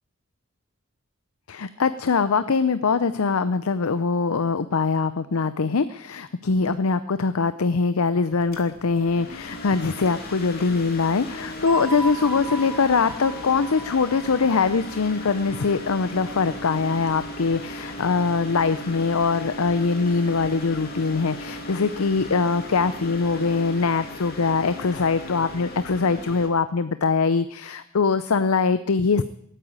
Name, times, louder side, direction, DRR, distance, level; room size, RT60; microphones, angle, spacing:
voice 1, 1.5-29.2, left 4 dB, 80° left, 13 dB, 0.6 m, -23 dB
sound 1, 8.3-26.5, left 1 dB, 45° left, 2.7 m, -37 dB
sound 2, 11.7-16.3, right 2 dB, ahead, 2.1 m, -36 dB
17.5 x 9.1 x 8.7 m, 0.72 s
head